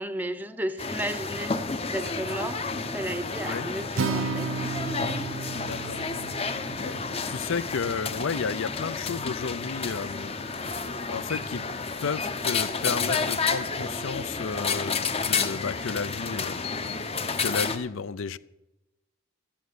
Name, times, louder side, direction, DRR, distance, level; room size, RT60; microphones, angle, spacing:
voice 1, 0.0-1.6 1.9-2.6 2.9-4.5, right 1 dB, 10° right, 0.7 m, -33 dB
sound 1, 0.8-17.8, left 4 dB, 30° left, 0.8 m, -31 dB
Acoustic guitar, 4.0-8.2, right 4 dB, 70° right, 0.6 m, -33 dB
voice 2, 5.6-6.0 6.8-10.4 11.1-11.6 12.0-16.6 17.4-18.4, left 5 dB, 65° left, 0.5 m, -32 dB
13.5 x 8.7 x 9.4 m
head